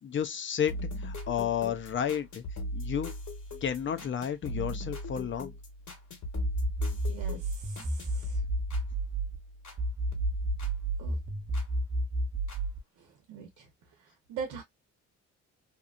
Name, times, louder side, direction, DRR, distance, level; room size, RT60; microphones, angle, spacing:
voice 1, 0.0-2.4 2.7-3.1 3.6-5.5, left 8 dB, 40° left, 0.5 m, -32 dB
sound 1, 0.7-9.8 10.1-11.7 12.5-12.6, equal, 70° left, 1.5 m, -39 dB
sound 2, 6.4-9.4 9.8-12.8, right 1 dB, 30° right, 0.8 m, -31 dB
voice 2, 6.9-7.4 8.1-8.4 11.0-11.2 13.3-13.5 14.3-14.6, right 6 dB, 90° right, 0.9 m, -39 dB
2.9 x 2.4 x 2.4 m
cardioid pair, 90°, 30 cm